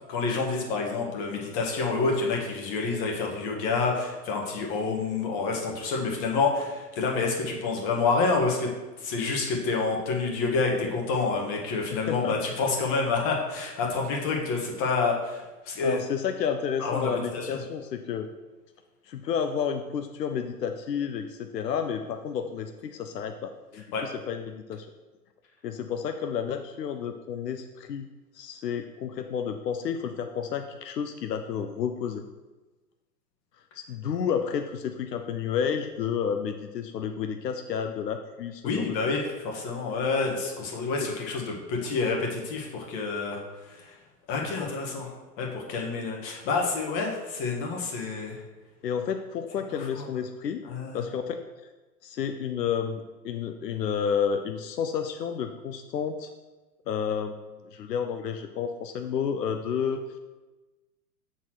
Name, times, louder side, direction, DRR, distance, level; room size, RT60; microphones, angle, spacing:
voice 1, 0.1-8.7 9.0-16.0 16.8-17.6 23.9-24.0 38.6-43.4 43.7-44.0 44.3-45.1 45.4-48.4 49.9-50.0 50.6-51.0, left 4 dB, 35° left, 0 dB, 1.7 m, -28 dB
voice 2, 11.9-12.4 15.8-18.3 19.0-24.9 25.6-28.1 28.3-32.2 33.7-39.0 41.0-41.1 44.4-44.7 48.8-50.6 50.9-51.6 52.0-56.3 56.9-57.4 57.6-60.0, left 7 dB, 80° left, 6 dB, 0.7 m, -31 dB
7.1 x 4.2 x 6.2 m, 1.2 s
hypercardioid pair, 125°, 48 cm